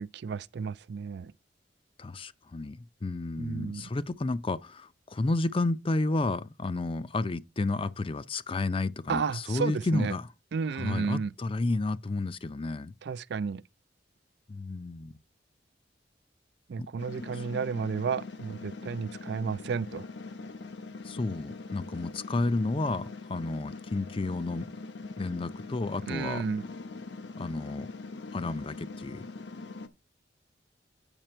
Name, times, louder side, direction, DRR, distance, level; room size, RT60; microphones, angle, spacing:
voice 1, 0.0-1.3 3.4-3.9 9.1-10.1 10.5-11.3 13.0-13.6 16.7-20.1 26.1-26.6, right 5 dB, 65° right, 0.4 m, -32 dB
voice 2, 2.0-10.3 10.7-12.9 14.5-15.1 16.8-16.9 17.2-17.5 21.0-24.7 25.2-26.5 27.4-27.9 28.3-29.2, left 2 dB, 30° left, 0.5 m, -31 dB
sound 1, 17.0-29.9, left 3 dB, 75° left, 0.8 m, -42 dB
9.0 x 5.8 x 4.4 m
head